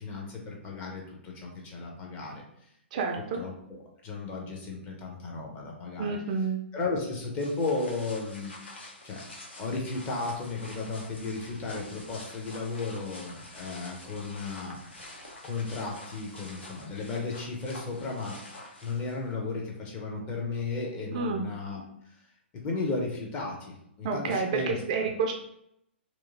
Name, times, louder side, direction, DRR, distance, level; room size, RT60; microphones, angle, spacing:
voice 1, 0.0-2.4 3.2-6.2 6.7-8.5 9.0-9.2 9.6-14.8 15.4-18.4 18.8-21.8 22.5-24.8, left 3 dB, 20° left, -1 dB, 0.6 m, -34 dB
voice 2, 2.9-3.4 6.0-6.6 21.1-21.5 24.0-25.3, right 5 dB, 35° right, 2 dB, 0.3 m, -29 dB
sound 1, 7.4-19.3, left 2 dB, 70° left, 0.8 m, -47 dB
2.9 x 2.4 x 2.4 m, 0.76 s
figure-of-eight pair, 120°, 6 cm